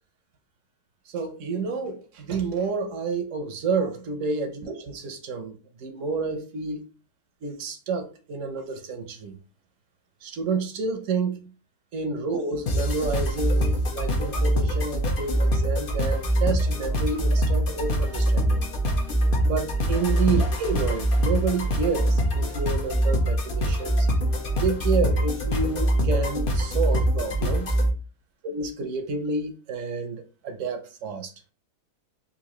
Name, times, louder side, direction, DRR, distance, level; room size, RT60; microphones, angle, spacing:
voice 1, 1.1-5.5 5.8-6.8 7.4-9.4 10.2-11.4 11.9-18.7 19.5-24.1 24.6-27.7 28.4-31.3, right 4 dB, 60° right, 0.8 m, -29 dB
sound 1, 12.7-27.9, right 1 dB, 60° left, 0.5 m, -24 dB
3.9 x 2.6 x 3.0 m
omnidirectional pair, 1.9 m